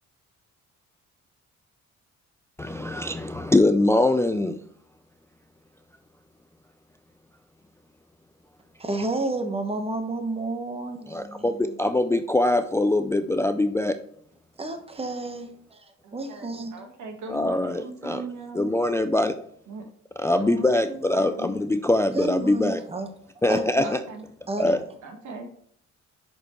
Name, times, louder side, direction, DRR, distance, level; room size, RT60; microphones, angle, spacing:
voice 1, 2.6-4.6 11.1-14.0 17.3-18.2 18.6-19.4 20.2-22.8 23.4-24.0 24.6-24.8, left 2 dB, 10° left, 9 dB, 0.3 m, -23 dB
voice 2, 8.8-11.7 14.6-15.8 16.1-16.7 22.1-23.1 23.5-24.0 24.5-24.8, right 2 dB, 20° right, 7 dB, 1.0 m, -31 dB
voice 3, 16.0-18.7 19.7-19.9 20.4-21.6 23.8-24.3 25.0-25.5, right 2 dB, 70° right, 5 dB, 1.5 m, -39 dB
6.3 x 5.2 x 3.0 m, 0.65 s
cardioid pair, 90°, 30 cm